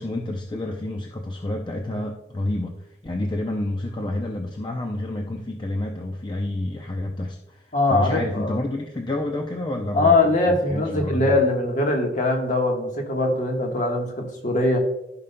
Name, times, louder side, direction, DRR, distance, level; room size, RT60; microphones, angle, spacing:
voice 1, 0.0-11.3, left 1 dB, 25° left, 2 dB, 0.5 m, -29 dB
voice 2, 7.7-8.6 9.9-14.8, left 2 dB, 45° left, 1 dB, 1.3 m, -22 dB
14.5 x 5.3 x 2.2 m, 0.87 s
head